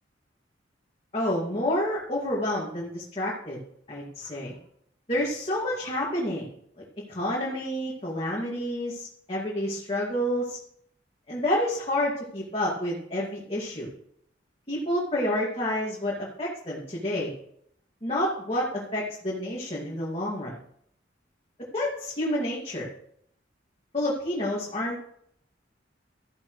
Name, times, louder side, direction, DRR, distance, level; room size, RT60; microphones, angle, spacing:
voice 1, 1.1-3.6 3.9-4.6 5.1-6.5 7.1-10.6 11.3-13.9 14.7-17.3 18.0-20.6 21.7-22.9 23.9-25.0, left 1 dB, 30° left, -6 dB, 2.3 m, -29 dB
13.5 x 11.5 x 3.3 m, 0.70 s
head